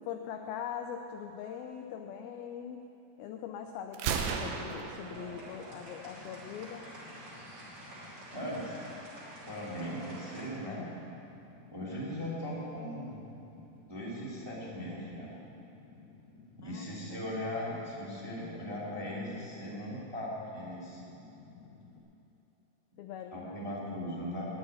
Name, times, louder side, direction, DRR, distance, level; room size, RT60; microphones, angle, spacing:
voice 1, 0.0-2.8 3.2-6.9 16.6-17.3 23.0-23.6, left 8 dB, 85° left, 4 dB, 2.1 m, -42 dB
Gunshot gunfire, 3.9-5.9, right 6 dB, 75° right, 2.4 m, -35 dB
Fire, 4.6-22.0, left 4 dB, 65° left, 1.5 m, -56 dB
sound 1, 4.8-10.5, right 1 dB, 45° right, 4.1 m, -49 dB
voice 2, 8.3-8.7 9.3-10.9 11.7-13.2 13.9-15.4 16.6-21.0 23.3-24.6, equal, 10° right, -6 dB, 1.9 m, -38 dB
9.7 x 9.5 x 9.8 m, 3.0 s
omnidirectional pair, 5.0 m